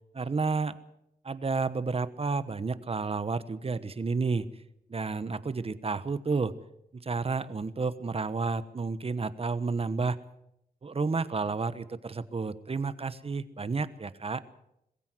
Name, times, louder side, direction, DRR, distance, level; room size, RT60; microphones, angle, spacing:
voice 1, 0.1-0.8 1.2-4.5 4.9-6.6 6.9-10.2 10.8-14.4, right 4 dB, 40° right, 14 dB, 1.1 m, -31 dB
21.5 x 15.5 x 7.8 m, 0.81 s
wide cardioid pair, 95°, 16 cm